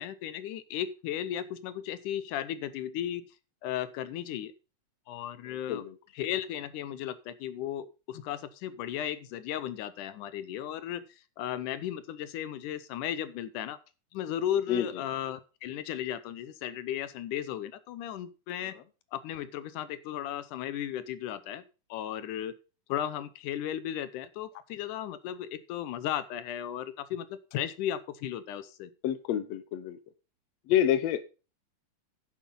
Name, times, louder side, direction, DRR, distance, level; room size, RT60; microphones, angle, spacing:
voice 1, 0.0-3.2 3.6-4.5 5.1-5.8 6.1-13.8 14.1-18.8 19.1-21.6 21.9-22.5 22.9-28.9, left 11 dB, 80° left, 14 dB, 2.3 m, -35 dB
voice 2, 5.5-5.9 14.7-14.9 29.0-30.0 30.7-31.2, left 10 dB, 65° left, 12 dB, 1.9 m, -28 dB
10.5 x 7.3 x 5.4 m, 0.32 s
omnidirectional pair, 3.6 m